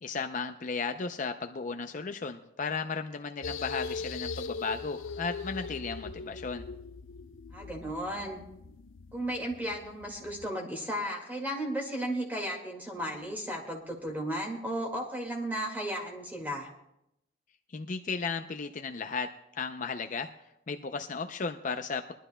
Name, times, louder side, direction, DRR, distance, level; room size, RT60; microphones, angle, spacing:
voice 1, 0.0-6.6 17.7-20.3 20.7-22.1, left 4 dB, 40° left, 7 dB, 0.5 m, -35 dB
sound 1, 3.4-10.5, left 4 dB, 90° left, 0.5 m, -41 dB
voice 2, 7.5-8.4 9.1-16.7, right 1 dB, 10° right, 1 dB, 2.0 m, -34 dB
22.5 x 12.0 x 2.2 m, 0.83 s
head